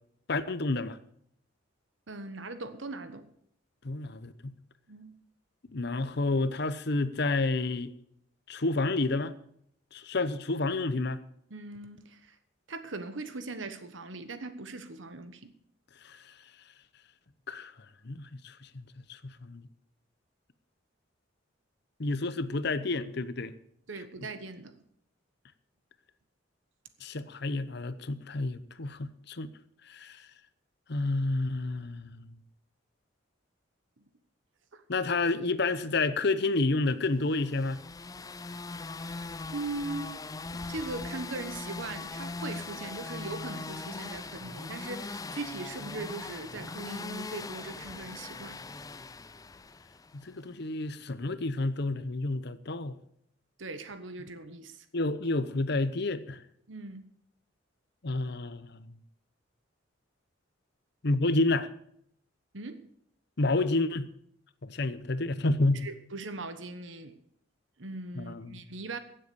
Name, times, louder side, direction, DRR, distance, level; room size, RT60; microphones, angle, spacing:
voice 1, 0.3-1.0 3.8-4.5 5.7-7.9 8.5-9.3 9.9-11.2 16.0-16.3 17.5-17.7 18.0-19.7 22.0-23.5 27.0-29.5 29.9-30.3 30.9-32.4 34.9-37.8 50.1-53.0 54.9-56.4 58.0-59.0 61.0-61.7 63.4-64.1 64.6-65.9 68.2-68.6, left 2 dB, 60° left, 0.8 m, -30 dB
voice 2, 2.1-3.3 4.9-5.2 11.5-12.4 12.7-15.5 23.9-24.8 34.7-34.8 39.5-40.1 40.5-48.5 53.6-54.9 56.7-57.0 62.5-62.9 65.7-67.2 67.8-69.0, right 3 dB, 75° right, 1.2 m, -40 dB
sound 1, 37.3-50.2, left 3 dB, 20° left, 0.4 m, -40 dB
16.0 x 7.9 x 7.0 m
head